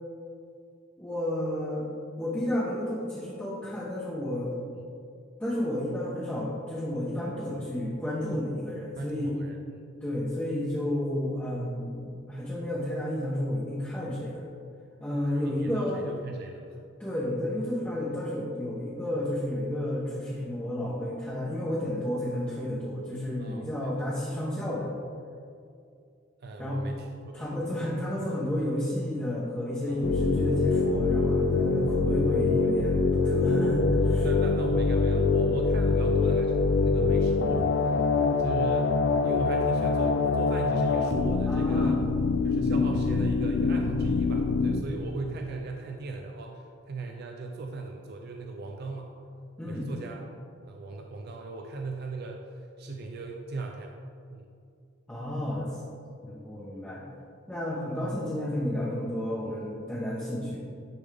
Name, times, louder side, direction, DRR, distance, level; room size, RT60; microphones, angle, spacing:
voice 1, 1.0-1.9 2.2-4.6 5.4-9.4 10.0-14.4 15.0-16.0 17.0-24.9 26.6-26.8 27.3-34.2 41.5-42.0 49.6-49.9 55.1-55.7 56.2-57.0 57.5-60.7, left 1 dB, 10° left, -9 dB, 0.9 m, -31 dB
voice 2, 9.0-9.6 15.3-16.7 23.4-23.9 26.4-27.4 27.7-27.8 28.2-28.3 29.9-30.0 34.0-37.8 38.4-38.9 39.2-42.0 42.4-49.1 49.6-50.2 50.6-52.5 52.8-54.0 54.3-54.5 59.5-59.6, right 3 dB, 55° right, 2 dB, 0.4 m, -38 dB
sound 1, 30.0-44.8, left 3 dB, 65° left, 0.3 m, -24 dB
10.0 x 3.5 x 3.4 m, 2.4 s
head